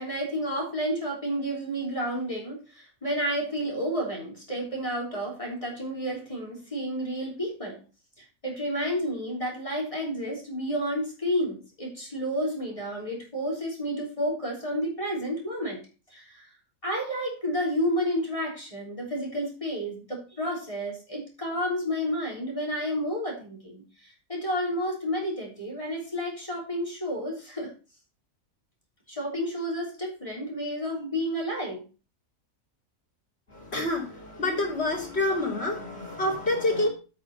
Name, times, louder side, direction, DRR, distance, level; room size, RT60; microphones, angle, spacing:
voice 1, 0.0-7.8 8.2-15.8 16.1-16.5 16.8-27.7 29.1-31.8, equal, 25° left, -2 dB, 3.6 m, -31 dB
voice 2, 33.5-36.9, left 2 dB, 50° left, -2 dB, 3.4 m, -27 dB
8.5 x 6.2 x 6.6 m, 0.34 s
omnidirectional pair, 1.4 m